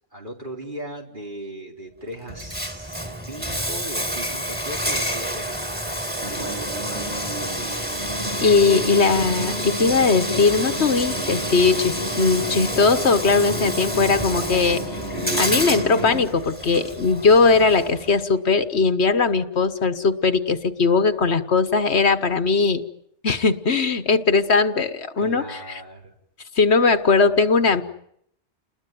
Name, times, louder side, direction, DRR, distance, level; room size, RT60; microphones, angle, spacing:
voice 1, 0.1-7.7 8.1-10.1 10.4-11.0 11.3-11.5 25.2-26.1 27.1-27.8, equal, 45° right, 1 dB, 4.3 m, -38 dB
Bathtub (filling or washing), 2.3-18.2, equal, 10° right, 3.8 m, -29 dB
sound 1, 6.2-16.2, right 1 dB, 65° right, 6.9 m, -32 dB
voice 2, 8.4-14.8 15.4-22.8 23.2-25.6 26.6-27.8, left 4 dB, 70° left, 10 dB, 1.6 m, -19 dB
30.0 x 21.0 x 9.3 m, 0.73 s
omnidirectional pair, 1.2 m